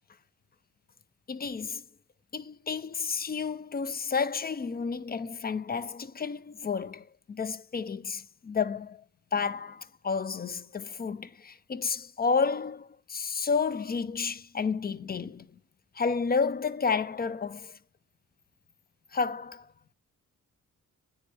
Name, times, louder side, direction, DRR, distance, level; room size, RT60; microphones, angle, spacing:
voice 1, 1.3-1.8 2.3-9.0 9.3-15.5 15.9-17.8 19.1-19.7, left 5 dB, 30° left, 0.4 m, -31 dB
9.5 x 3.4 x 3.2 m
wide cardioid pair, 95°, 33 cm